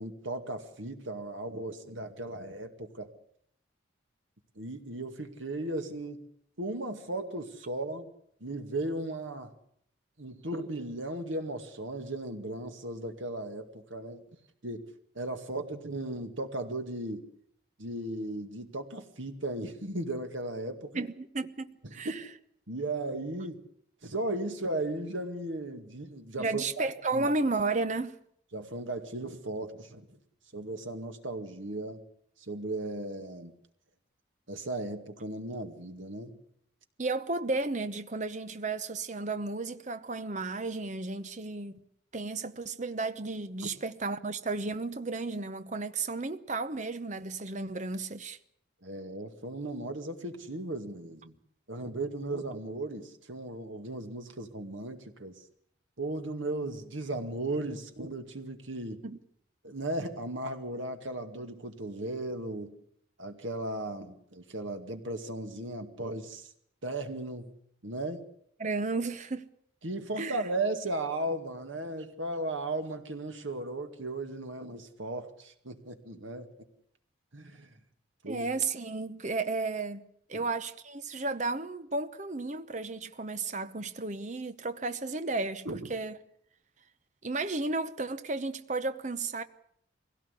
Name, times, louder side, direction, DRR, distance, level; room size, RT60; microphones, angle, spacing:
voice 1, 0.0-3.1 4.6-6.2 6.6-8.1 8.4-9.5 10.2-14.2 14.6-14.9 15.2-17.2 17.8-21.0 21.9-22.2 22.7-23.6 24.0-26.9 27.1-27.3 28.5-30.1 30.5-32.0 32.5-33.5 34.5-36.4 48.8-51.4 51.7-55.4 56.0-59.0 59.6-62.8 63.2-66.5 66.8-67.5 67.8-68.2 69.8-76.5 77.3-77.7 78.2-78.5 85.7-85.9, right 2 dB, 80° right, 2.2 m, -36 dB
voice 2, 20.9-22.2 26.4-28.2 37.0-41.8 42.1-48.4 59.0-59.2 68.6-69.5 70.2-70.4 78.3-80.0 80.3-86.2 87.2-89.4, right 3 dB, 40° right, 0.9 m, -33 dB
22.5 x 17.0 x 8.4 m
head